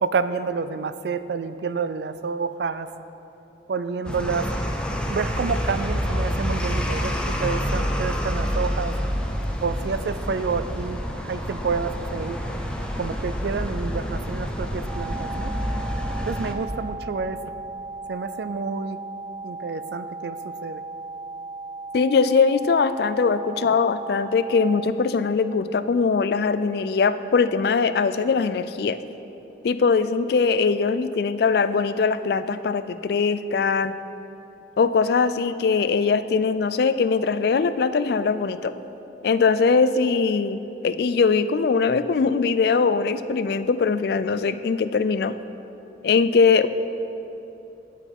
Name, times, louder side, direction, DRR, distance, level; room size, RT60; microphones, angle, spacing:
voice 1, 0.0-2.9 3.7-4.5 5.1-8.9 9.6-12.4 13.0-15.5 16.3-17.4 18.1-19.0 19.4-20.8, right 5 dB, 60° right, 13 dB, 0.4 m, -29 dB
sound 1, 4.0-16.5, equal, 5° left, 0.6 m, -28 dB
sound 2, 14.9-24.9, right 3 dB, 15° right, 1.0 m, -36 dB
voice 2, 21.9-29.0 29.6-33.9 34.8-38.7 39.2-45.3 46.0-46.7, left 5 dB, 55° left, 13 dB, 0.3 m, -21 dB
9.0 x 8.3 x 5.3 m, 3.0 s
head